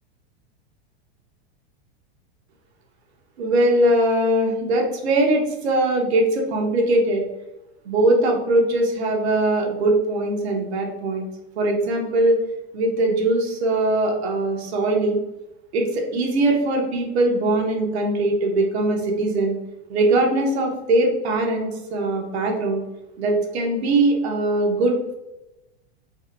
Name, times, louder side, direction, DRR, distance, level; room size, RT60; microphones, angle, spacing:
voice 1, 3.4-7.2 7.8-11.3 11.6-12.4 12.7-15.2 15.7-19.6 19.9-22.8 23.2-24.9, right 2 dB, 90° right, 1 dB, 1.1 m, -21 dB
4.7 x 2.2 x 2.6 m, 0.95 s
supercardioid pair, 155°, 31 cm